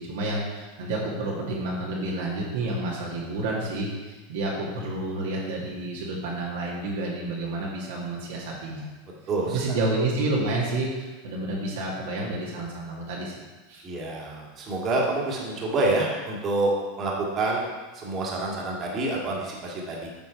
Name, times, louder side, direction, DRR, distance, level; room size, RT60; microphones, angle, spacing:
voice 1, 0.0-8.9 9.5-13.3 13.7-13.8, right 2 dB, 70° right, -4 dB, 1.7 m, -29 dB
voice 2, 9.3-9.8 13.8-16.7 17.0-20.1, right 2 dB, 35° right, -3 dB, 1.9 m, -27 dB
8.7 x 4.4 x 4.5 m, 1.2 s
hypercardioid pair, 95°, 0 cm